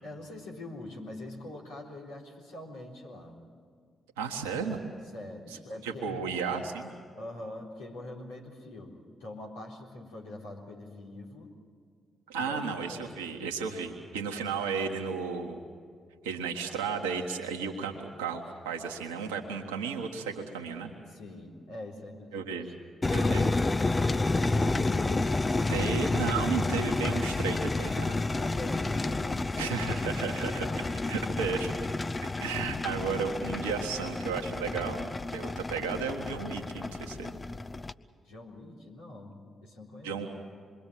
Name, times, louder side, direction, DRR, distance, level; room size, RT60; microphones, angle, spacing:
voice 1, 0.0-3.5 5.1-6.2 7.2-11.5 12.4-12.6 12.9-13.1 14.2-14.4 16.3-16.4 16.7-16.9 21.1-22.6 23.2-25.9 28.4-29.7 30.1-31.6 38.2-40.2, left 2 dB, 80° left, -4 dB, 3.9 m, -44 dB
voice 2, 4.2-4.8 5.8-6.9 12.3-15.6 16.2-20.9 22.3-22.7 23.1-23.5 25.7-28.2 29.6-30.6 31.1-31.7 32.2-37.4 40.0-40.3, right 5 dB, 85° right, 2 dB, 1.5 m, -34 dB
sound 1, 23.0-37.9, left 2 dB, 30° left, 0.7 m, -30 dB
26.5 x 22.5 x 7.6 m, 2.1 s
hypercardioid pair, 40°, 0 cm